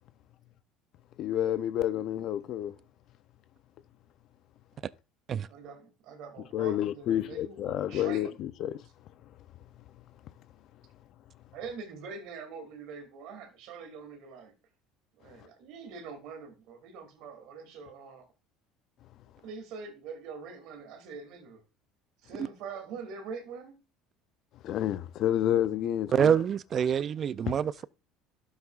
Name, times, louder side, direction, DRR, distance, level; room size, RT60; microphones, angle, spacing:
voice 1, 1.2-2.7 6.5-8.8 24.6-26.3, left 11 dB, 55° left, 0.5 m, -29 dB
voice 2, 5.5-8.4 11.5-14.5 15.2-18.3 19.4-21.6 22.2-23.8, right 5 dB, 70° right, 2.4 m, -44 dB
voice 3, 26.1-27.9, right 8 dB, 40° right, 0.3 m, -26 dB
12.0 x 7.1 x 2.4 m
cardioid pair, 120°, 0 cm